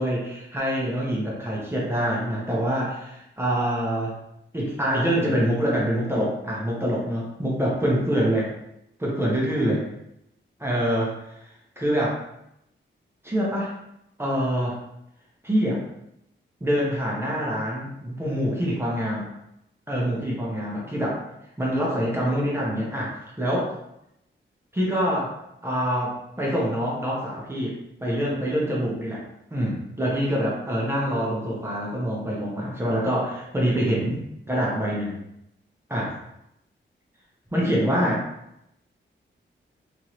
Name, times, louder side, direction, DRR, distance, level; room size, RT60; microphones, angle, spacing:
voice 1, 0.0-4.2 4.5-8.5 9.0-9.8 10.6-11.2 11.8-12.2 13.2-13.7 14.2-14.8 15.4-15.8 16.6-19.3 19.9-21.2 21.6-23.7 24.7-25.3 25.6-27.7 28.0-29.2 29.5-35.2 35.9-36.1 37.5-38.2, equal, 10° right, -5 dB, 0.7 m, -25 dB
2.9 x 2.6 x 3.0 m, 0.82 s
wide cardioid pair, 135°, 20 cm